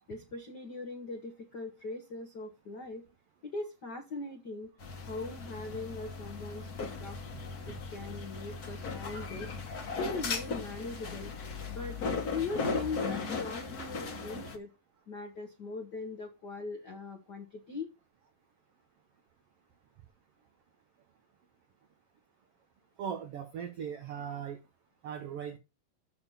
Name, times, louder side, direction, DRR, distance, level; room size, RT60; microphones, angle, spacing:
voice 1, 0.1-3.0 3.4-4.7 5.1-7.2 7.7-9.5 10.0-11.3 11.7-14.7 15.1-17.9, left 3 dB, 70° left, 0.9 m, -40 dB
sound 1, 4.8-14.6, left 4 dB, 50° left, 1.1 m, -37 dB
voice 2, 23.0-24.6 25.0-25.6, right 8 dB, 85° right, 1.3 m, -38 dB
7.1 x 6.5 x 5.5 m
omnidirectional pair, 3.9 m